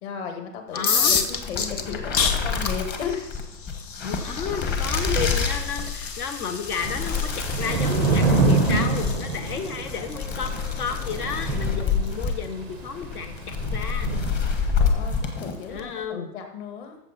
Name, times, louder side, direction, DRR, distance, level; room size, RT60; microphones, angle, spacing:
voice 1, 0.0-3.3 14.8-17.0, left 6 dB, 40° left, 4 dB, 2.0 m, -35 dB
sound 1, 0.7-12.4, left 6 dB, 90° left, 1.4 m, -31 dB
voice 2, 0.7-1.2 4.0-14.1 15.7-16.3, left 6 dB, 65° left, 8 dB, 1.3 m, -32 dB
sound 2, 1.0-15.9, left 5 dB, 20° left, 1.2 m, -28 dB
Thunder / Rain, 6.7-15.1, right 3 dB, ahead, 0.5 m, -26 dB
14.0 x 7.4 x 4.2 m, 0.97 s
hypercardioid pair, 145°, 48 cm